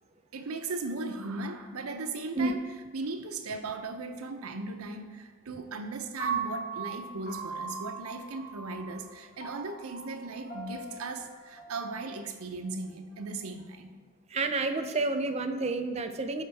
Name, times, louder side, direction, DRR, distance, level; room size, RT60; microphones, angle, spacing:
voice 1, 0.3-2.6 2.9-13.9, right 3 dB, 80° right, 6 dB, 0.7 m, -37 dB
Piano, 6.2-12.4, right 5 dB, 40° left, 1.5 m, -39 dB
voice 2, 14.3-16.4, right 3 dB, 30° right, 8 dB, 0.4 m, -29 dB
12.0 x 4.5 x 3.4 m, 1.4 s
head